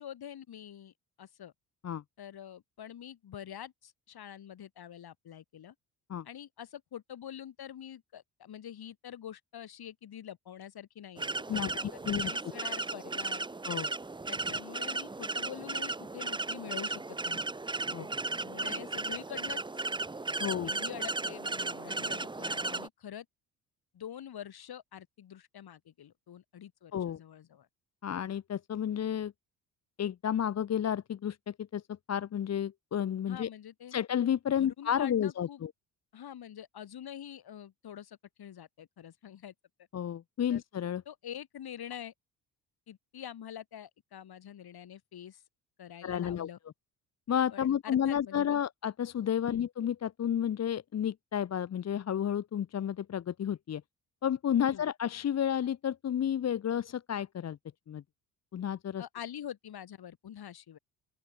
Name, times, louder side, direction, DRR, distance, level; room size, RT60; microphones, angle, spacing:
voice 1, 0.0-1.5 2.2-5.7 6.2-13.4 14.3-17.4 18.4-19.8 20.4-23.3 23.9-27.7 33.3-33.9 34.6-35.6 36.1-39.5 40.5-40.6 41.1-42.1 42.9-45.4 45.8-46.6 47.5-48.6 49.4-49.6 54.6-54.8 59.0-60.8, left 10 dB, 50° left, 6.1 m, -46 dB
sound 1, 11.2-22.9, right 3 dB, 10° right, 0.8 m, -35 dB
voice 2, 11.5-12.3 13.7-13.9 17.9-18.1 20.4-20.7 26.9-27.2 28.0-29.3 30.0-33.5 33.9-35.7 39.9-41.0 46.0-46.5 47.3-53.8 54.2-57.6 57.9-58.0 58.5-59.0, left 9 dB, 35° left, 1.0 m, -31 dB
open air
hypercardioid pair, 50°, 48 cm